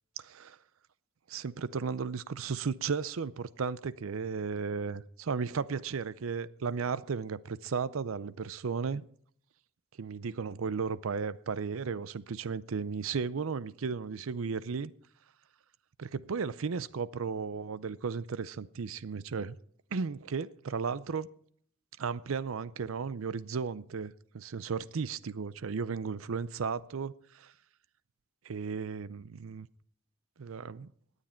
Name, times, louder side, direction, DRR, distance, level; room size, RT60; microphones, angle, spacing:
voice 1, 0.2-0.6 1.3-9.0 10.0-14.9 16.0-19.6 19.9-21.3 22.0-27.5 28.4-29.7 30.4-30.9, right 5 dB, 85° right, 0.5 m, -35 dB
18.0 x 9.9 x 4.4 m
head